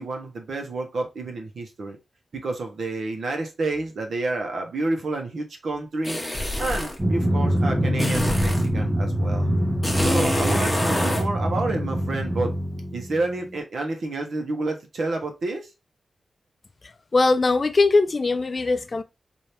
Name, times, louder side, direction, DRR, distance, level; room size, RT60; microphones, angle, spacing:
voice 1, 0.0-2.0 2.3-6.2 6.6-9.5 10.0-12.5 12.9-15.7, right 2 dB, 75° right, 1.0 m, -29 dB
sound 1, 6.0-7.0 8.0-8.7 9.8-11.3, left 1 dB, 5° left, 1.0 m, -26 dB
Drum, 7.0-13.5, equal, 20° right, 1.0 m, -24 dB
voice 2, 17.1-19.0, left 3 dB, 35° left, 0.4 m, -20 dB
4.4 x 2.7 x 3.3 m
wide cardioid pair, 155°, 0 cm